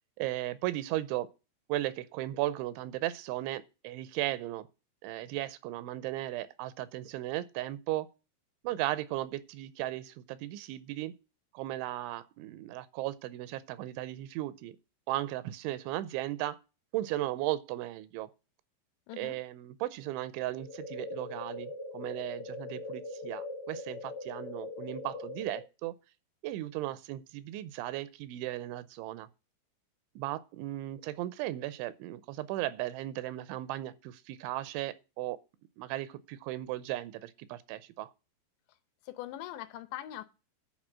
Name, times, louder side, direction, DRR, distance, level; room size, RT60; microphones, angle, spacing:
voice 1, 0.2-1.3 1.7-4.7 5.0-8.1 8.6-11.1 11.5-14.8 15.1-16.6 16.9-18.3 19.2-25.9 26.4-29.3 30.2-35.4 35.8-38.1, right 15 dB, 85° right, 3.1 m, -36 dB
sound 1, 20.6-25.6, left 2 dB, 50° left, 1.8 m, -41 dB
voice 2, 39.1-40.3, left 13 dB, 80° left, 3.0 m, -41 dB
10.5 x 5.0 x 7.3 m
omnidirectional pair, 5.3 m